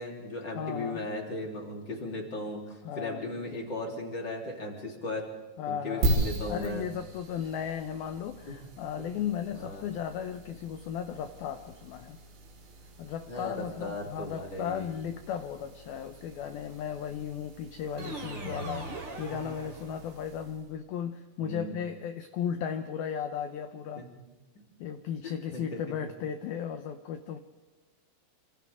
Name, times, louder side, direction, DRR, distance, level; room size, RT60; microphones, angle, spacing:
voice 1, 0.0-5.3 5.7-6.9 8.4-8.5 9.0-9.1 9.5-9.9 13.3-15.0 19.4-19.6 21.4-21.7 23.9-24.1 25.2-25.8, left 1 dB, 25° left, 0 dB, 3.4 m, -37 dB
voice 2, 0.5-1.1 2.8-3.5 5.6-12.2 13.0-24.0 24.8-27.4, left 8 dB, 85° left, 8 dB, 2.1 m, -36 dB
sound 1, 6.0-20.8, right 1 dB, 70° right, 5.9 m, -38 dB
sound 2, 18.0-20.3, right 2 dB, 30° right, 2.8 m, -40 dB
28.0 x 27.0 x 3.7 m, 1.2 s
omnidirectional pair, 5.6 m